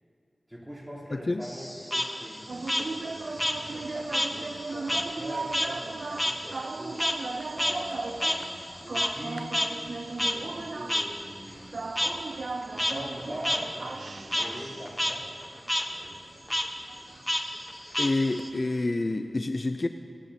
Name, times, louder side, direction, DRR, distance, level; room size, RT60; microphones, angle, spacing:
voice 1, 0.5-3.4 3.7-7.1 7.5-12.1 12.7-15.3 15.9-16.2, equal, 5° right, -6 dB, 3.3 m, -42 dB
voice 2, 1.1-1.4 18.0-19.9, left 2 dB, 45° left, 7 dB, 0.4 m, -28 dB
Frog, 1.4-4.4 4.7-9.3 9.5-9.7 10.2-10.3 10.9-11.0 12.0-12.1 12.6-12.9 13.4-13.6 13.9-14.5 14.9-15.1 15.4-15.8 16.5-16.6 17.3-18.5, equal, 10° left, 1.0 m, -29 dB
sound 1, 2.5-18.7, right 3 dB, 65° right, 0.4 m, -38 dB
25.5 x 8.9 x 2.8 m, 2.8 s
wide cardioid pair, 55°, 0 cm